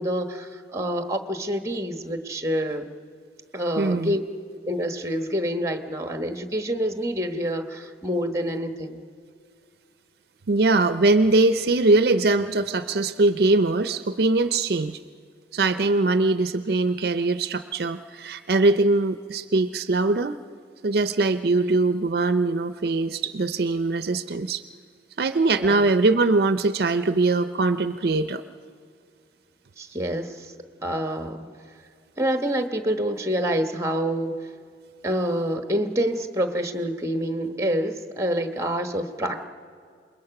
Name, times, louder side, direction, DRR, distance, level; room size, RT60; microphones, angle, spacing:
voice 1, 0.0-2.8 3.5-4.2 4.7-9.0 21.5-21.7 25.6-25.9 29.8-30.5 30.8-31.5 32.2-34.3 35.0-39.5, equal, 15° right, 7 dB, 1.1 m, -27 dB
voice 2, 3.8-4.2 10.5-15.0 15.5-20.4 20.8-24.6 25.2-28.4, right 3 dB, 60° right, 11 dB, 0.5 m, -22 dB
27.5 x 21.5 x 5.9 m, 2.3 s
head